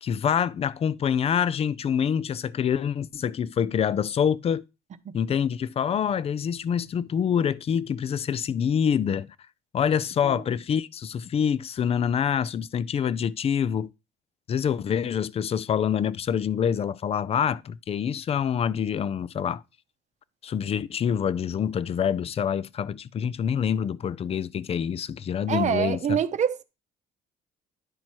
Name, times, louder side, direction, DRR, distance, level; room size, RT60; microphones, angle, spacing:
voice 1, 0.0-4.6 5.1-9.3 9.7-13.9 14.5-19.6 20.4-26.2, left 8 dB, 35° left, 0.4 m, -26 dB
voice 2, 25.5-26.6, right 8 dB, 45° right, 0.8 m, -26 dB
10.5 x 4.4 x 4.5 m
cardioid pair, 110°, 17 cm